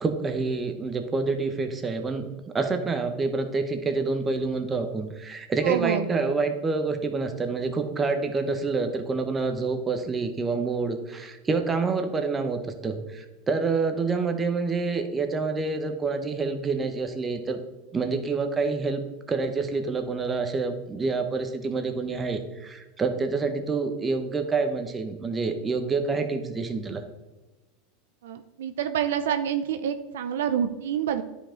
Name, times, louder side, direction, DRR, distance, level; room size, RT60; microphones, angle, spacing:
voice 1, 0.0-2.3 2.5-17.6 17.9-19.0 19.3-27.0, right 4 dB, 20° right, 6 dB, 1.0 m, -27 dB
voice 2, 5.6-6.0 28.2-31.2, right 9 dB, 80° right, 8 dB, 0.5 m, -27 dB
10.0 x 5.2 x 3.8 m, 1.1 s
hypercardioid pair, 110°, 0 cm